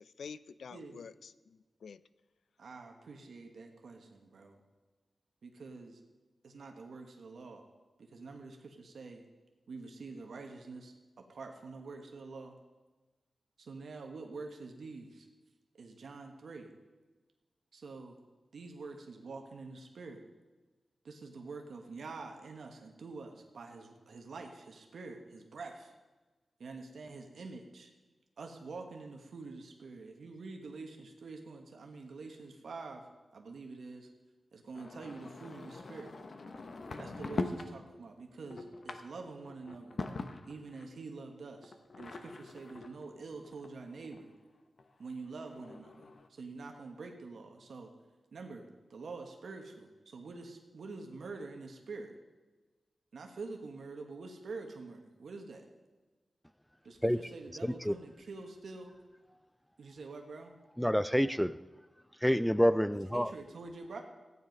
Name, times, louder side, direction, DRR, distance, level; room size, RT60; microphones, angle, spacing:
voice 1, 0.0-2.0, left 6 dB, 90° left, 0.4 m, -48 dB
voice 2, 0.7-1.0 2.6-4.6 5.4-6.0 6.4-7.6 8.1-9.2 9.7-10.9 11.3-12.5 13.6-15.3 15.8-16.7 17.7-18.1 18.5-20.2 21.0-25.9 26.6-27.9 28.4-33.0 33.3-34.1 34.5-36.1 37.0-40.0 40.4-44.3 45.0-46.0 46.3-47.9 48.3-48.6 48.9-52.1 53.1-55.6 56.8-58.9 59.8-60.5 63.1-64.0, right 3 dB, 75° right, 1.4 m, -46 dB
sound 1, 34.7-37.7 38.2-40.8 41.6-44.2 44.8-44.9 45.1-45.2 45.4-46.3, left 3 dB, 50° left, 1.0 m, -42 dB
voice 3, 57.6-57.9 60.8-61.6 62.2-63.3, equal, ahead, 0.3 m, -28 dB
15.0 x 9.7 x 5.3 m
wide cardioid pair, 115°, 0 cm